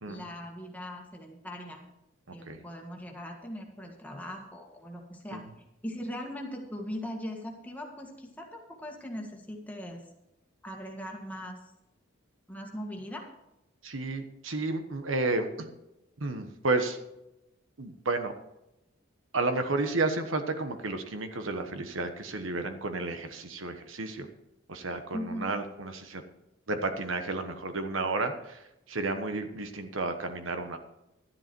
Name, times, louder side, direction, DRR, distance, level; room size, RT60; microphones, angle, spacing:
voice 1, 0.0-1.8 2.3-5.4 5.8-10.0 10.6-11.6 12.5-13.3 25.1-25.5, equal, 10° left, 1 dB, 1.7 m, -40 dB
voice 2, 13.8-15.7 16.2-17.0 17.8-18.3 19.3-24.3 24.7-26.2 26.7-30.8, right 3 dB, 80° right, 8 dB, 1.2 m, -32 dB
12.0 x 11.0 x 4.6 m, 0.90 s
head